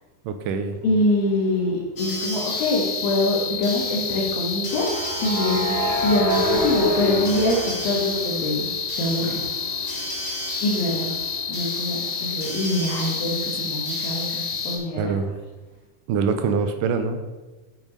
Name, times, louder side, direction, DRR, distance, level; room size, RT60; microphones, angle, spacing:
voice 1, 0.2-0.8 15.0-15.4 16.1-17.2, right 5 dB, 80° right, 8 dB, 2.2 m, -24 dB
voice 2, 0.8-8.7 9.0-9.5 10.6-11.1 11.5-15.1, left 1 dB, 85° left, -3 dB, 3.1 m, -24 dB
sound 1, 1.4-1.6 4.7-8.6 9.0-12.6, equal, 35° right, 3.4 m, -28 dB
sound 2, 2.0-14.8, left 4 dB, 45° left, 1.3 m, -29 dB
8.8 x 5.9 x 5.3 m, 1.2 s
omnidirectional pair, 4.0 m